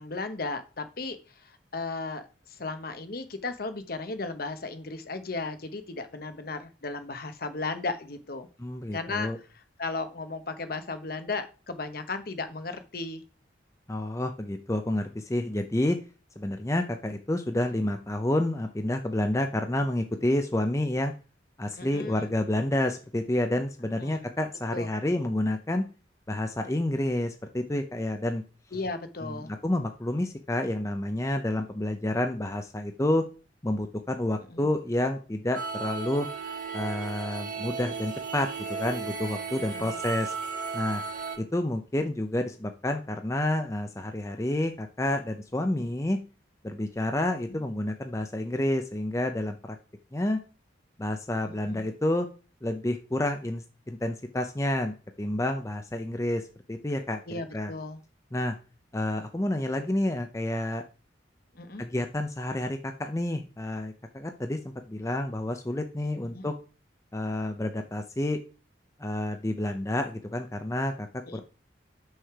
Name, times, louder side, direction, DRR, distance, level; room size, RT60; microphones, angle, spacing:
voice 1, 0.0-8.5 8.9-9.3 9.8-13.2 21.8-22.3 24.0-24.2 24.7-24.9 28.7-29.5 34.5-34.7 39.7-40.0 45.7-45.9 47.5-47.6 51.5-51.8 57.3-58.0 61.5-61.8 66.3-66.5 71.2-71.4, left 3 dB, 55° left, 9 dB, 1.0 m, -35 dB
voice 2, 8.6-9.4 13.9-16.0 16.4-21.1 21.6-25.8 26.3-28.4 29.2-33.2 33.6-36.3 36.7-40.3 40.7-41.0 41.4-46.2 46.6-49.8 50.1-50.4 51.0-52.3 52.6-56.4 56.7-57.7 58.3-58.6 58.9-60.8 61.8-64.6 64.9-66.5 67.1-68.4 69.0-71.1 71.3-71.4, left 1 dB, 15° left, 6 dB, 0.6 m, -29 dB
sound 1, 35.5-41.4, right 5 dB, 45° right, 1.8 m, -35 dB
6.4 x 6.3 x 4.8 m, 0.34 s
head